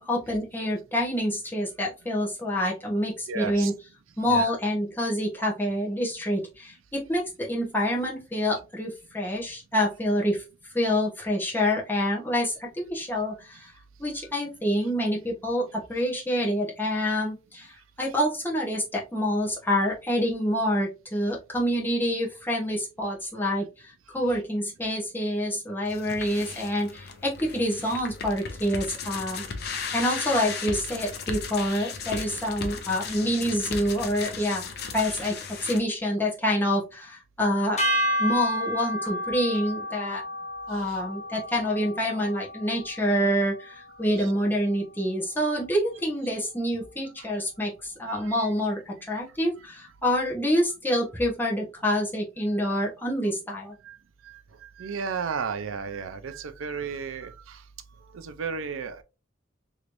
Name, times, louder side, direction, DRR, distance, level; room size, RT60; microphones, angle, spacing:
voice 1, 0.0-3.7 4.2-10.4 10.7-13.7 14.0-29.4 29.9-34.6 34.9-37.8 38.2-40.2 40.7-53.7, equal, 10° left, 0.9 m, -27 dB
voice 2, 3.3-3.7 4.2-4.5 35.0-35.1 40.8-41.0 44.2-44.3 48.1-48.3 51.9-52.0 52.8-52.9 53.8-54.0 54.2-54.4 54.8-57.6 58.1-59.0, right 6 dB, 80° right, 0.5 m, -34 dB
sound 1, 25.8-35.8, left 5 dB, 55° left, 0.6 m, -36 dB
sound 2, 37.8-44.1, equal, 35° left, 1.0 m, -31 dB
3.1 x 3.0 x 2.5 m
head